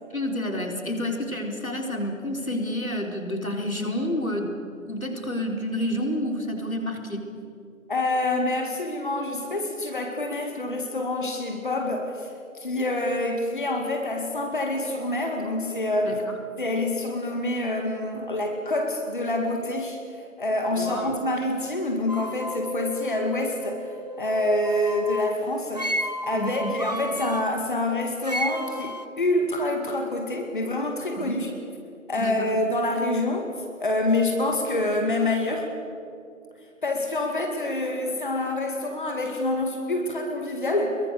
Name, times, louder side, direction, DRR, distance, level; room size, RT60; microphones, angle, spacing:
voice 1, 0.1-4.5 4.9-7.3 16.0-16.4 20.7-21.2 26.3-26.7 31.2-31.4 32.2-32.5, left 1 dB, 85° left, 2 dB, 4.2 m, -29 dB
voice 2, 7.9-16.2 16.6-20.0 20.4-23.9 24.2-26.0 26.2-31.5 32.1-33.5 33.8-35.7 36.8-41.0, left 2 dB, 40° left, 3 dB, 2.2 m, -26 dB
sound 1, 22.1-25.4 25.7-27.5 28.2-29.1, equal, 30° right, 0.8 m, -33 dB
25.5 x 22.5 x 6.7 m, 2.5 s
figure-of-eight pair, 165°, 40 cm